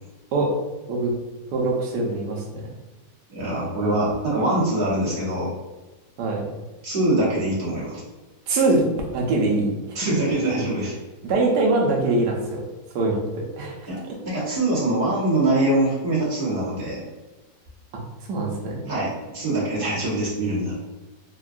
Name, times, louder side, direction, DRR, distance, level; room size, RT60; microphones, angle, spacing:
voice 1, 1.5-2.4 6.2-6.5 8.5-8.8 9.1-10.0 11.2-12.6 12.9-13.7 14.5-14.6 18.3-18.8, right 2 dB, 70° right, -1 dB, 1.2 m, -23 dB
voice 2, 3.3-5.5 6.8-8.0 9.9-10.9 13.9-17.0 18.9-20.8, right 1 dB, 35° right, -8 dB, 1.1 m, -23 dB
3.5 x 2.2 x 2.4 m, 1.1 s
omnidirectional pair, 1.9 m